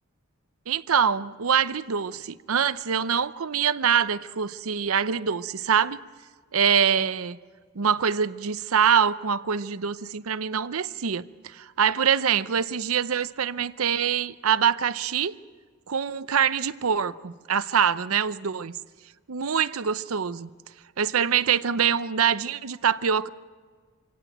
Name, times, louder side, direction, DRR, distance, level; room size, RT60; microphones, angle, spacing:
voice 1, 0.7-6.0 6.5-7.4 7.8-11.3 11.5-15.3 15.9-18.7 19.3-20.5 21.0-23.3, right 7 dB, 85° right, 0.7 m, -24 dB
25.5 x 17.0 x 7.9 m
head